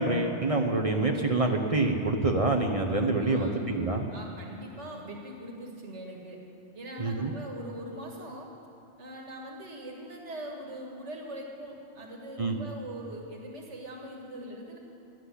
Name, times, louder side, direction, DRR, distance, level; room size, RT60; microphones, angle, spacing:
voice 1, 0.0-4.1 7.0-7.3 12.4-12.6, right 2 dB, 30° right, 3 dB, 0.7 m, -26 dB
voice 2, 3.2-3.6 4.1-6.4 6.7-8.5 9.0-14.8, right 1 dB, 55° right, 0 dB, 2.0 m, -41 dB
11.5 x 7.7 x 9.9 m, 2.6 s
omnidirectional pair, 1.4 m